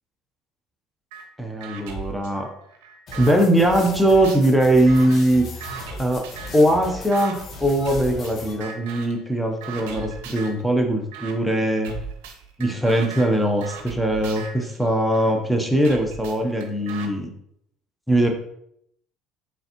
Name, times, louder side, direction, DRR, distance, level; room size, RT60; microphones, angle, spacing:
sound 1, 1.1-1.2 1.6-3.4 3.8-6.7 7.1-7.4 7.8-8.3 8.6-9.2 9.6-10.6 11.1-11.3 11.8-15.3 15.8-17.1, right 6 dB, 80° right, 0.6 m, -38 dB
voice 1, 1.4-2.5 3.2-5.4 6.0-6.2 6.5-11.9 12.6-17.3 18.1-18.3, right 1 dB, ahead, 2 dB, 0.7 m, -20 dB
sound 2, 3.1-8.5, left 2 dB, 50° left, 1.0 m, -37 dB
4.0 x 3.2 x 2.9 m, 0.73 s
hypercardioid pair, 75°, 0 cm